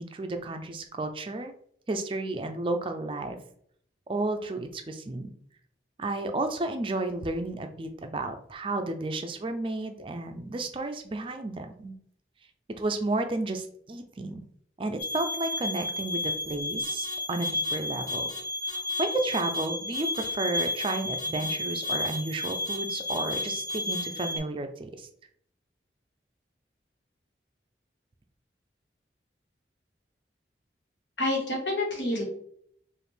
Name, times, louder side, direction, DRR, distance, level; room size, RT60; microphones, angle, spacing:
voice 1, 0.0-1.5 1.9-3.4 4.1-5.3 6.0-12.0 12.7-14.4 14.8-18.3 18.7-25.1, right 2 dB, 30° right, 6 dB, 0.4 m, -32 dB
sound 1, 15.0-24.4, left 2 dB, 5° left, 0.7 m, -32 dB
sound 2, 16.8-17.1 17.4-17.7 18.1-18.4 18.7-19.0 19.3-19.6 19.9-20.3 20.6-20.9 21.2-21.5 21.8-22.2 22.4-22.8 23.1-23.4 23.7-24.0, left 4 dB, 40° left, 1.4 m, -43 dB
voice 2, 31.2-32.2, left 1 dB, 85° left, -1 dB, 1.4 m, -28 dB
5.0 x 2.5 x 3.2 m, 0.65 s
head